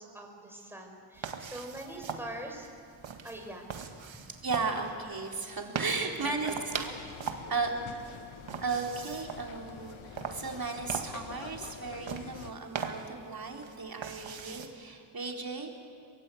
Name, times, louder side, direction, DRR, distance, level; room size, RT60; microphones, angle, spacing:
voice 1, 0.0-2.7 3.2-3.6 6.0-6.9 7.4-7.5 8.2-8.4, right 1 dB, 5° right, 1 dB, 5.4 m, -44 dB
sound 1, 1.2-14.7, right 6 dB, 70° right, 2.0 m, -41 dB
voice 2, 4.4-6.7 7.5-7.7 8.6-15.8, right 4 dB, 45° right, 1 dB, 4.0 m, -35 dB
sound 2, 6.7-12.5, left 9 dB, 75° left, 1.1 m, -47 dB
22.5 x 19.0 x 8.5 m, 2.3 s
cardioid pair, 55°, 48 cm